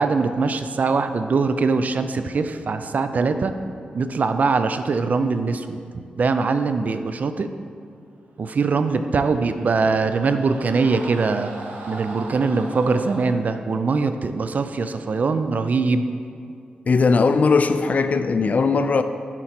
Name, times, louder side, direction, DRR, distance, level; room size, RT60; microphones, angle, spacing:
voice 1, 0.0-3.5 3.9-5.8 6.2-7.5 8.4-11.5 11.9-16.1, right 4 dB, 55° right, 9 dB, 0.4 m, -22 dB
sound 1, 9.0-13.3, right 2 dB, 75° right, 0.9 m, -39 dB
voice 2, 16.9-19.0, left 4 dB, 55° left, 10 dB, 0.4 m, -18 dB
7.8 x 4.5 x 4.3 m, 2.3 s
cardioid pair, 55°, 3 cm